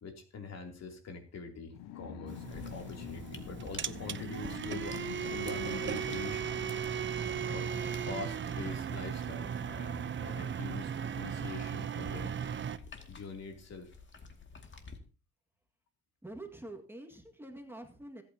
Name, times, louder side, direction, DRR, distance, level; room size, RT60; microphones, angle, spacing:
voice 1, 0.0-5.0 5.3-6.4 7.5-7.8 8.0-12.3 13.1-14.0, left 4 dB, 60° left, 3 dB, 3.1 m, -44 dB
sound 1, 1.7-9.9, left 13 dB, 90° left, 0.7 m, -48 dB
sound 2, 2.3-12.8, right 8 dB, 40° right, 0.7 m, -37 dB
sound 3, 2.5-15.0, left 4 dB, 40° left, 2.3 m, -53 dB
voice 2, 16.2-18.2, right 1 dB, 5° right, 3 dB, 2.0 m, -46 dB
26.0 x 8.9 x 2.9 m, 0.35 s
cardioid pair, 90°, 30 cm